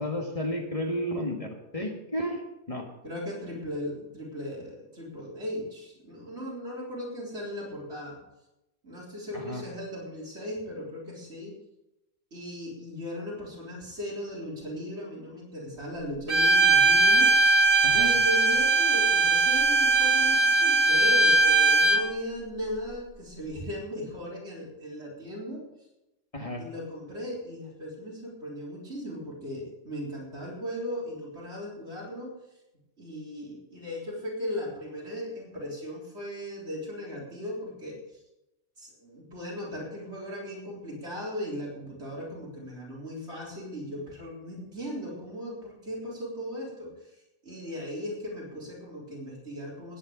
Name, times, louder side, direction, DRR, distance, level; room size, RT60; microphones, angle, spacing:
voice 1, 0.0-2.4 2.7-2.9 9.3-9.6 17.8-18.1 26.3-26.6, equal, 30° left, 1 dB, 1.9 m, -32 dB
voice 2, 3.0-8.2 8.8-11.5 12.3-17.3 17.9-25.6 26.6-32.3 33.0-38.0 38.8-46.9 47.4-50.0, equal, 65° right, -3 dB, 4.2 m, -37 dB
Bowed string instrument, 16.3-22.0, right 3 dB, 50° right, 1.9 m, -20 dB
18.0 x 9.1 x 5.2 m, 0.94 s
omnidirectional pair, 1.2 m